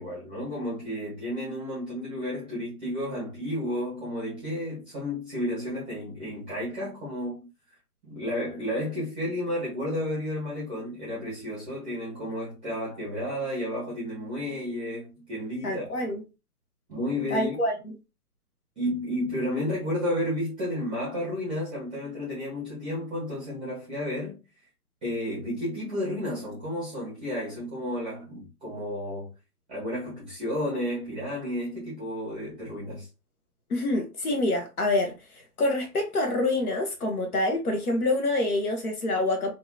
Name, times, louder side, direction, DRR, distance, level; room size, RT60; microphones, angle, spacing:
voice 1, 0.0-7.5 8.0-15.8 16.9-17.6 18.8-24.3 25.0-29.3 29.7-33.1, left 1 dB, 5° right, 0.7 m, -32 dB
voice 2, 15.6-16.2 17.3-17.8 33.7-35.1 35.6-39.5, left 2 dB, 70° left, 1.2 m, -26 dB
2.8 x 2.8 x 2.3 m
hypercardioid pair, 160°, 46 cm